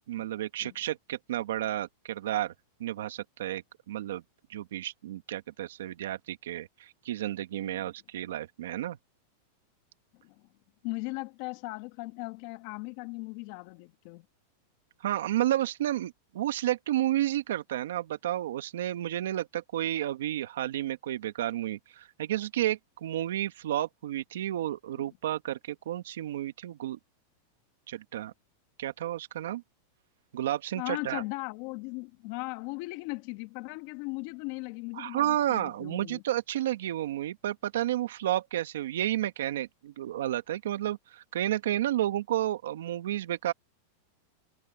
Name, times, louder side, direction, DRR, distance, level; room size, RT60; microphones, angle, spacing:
voice 1, 0.0-2.5 2.8-3.6 3.9-4.2 4.5-9.0 15.0-27.0 27.9-28.3 28.8-29.6 30.3-31.2 35.0-43.5, right 13 dB, 80° right, 1.7 m, -31 dB
voice 2, 10.8-14.2 25.0-25.1 30.7-36.2, left 26 dB, 55° left, 1.6 m, -38 dB
supercardioid pair, 135°, 0 cm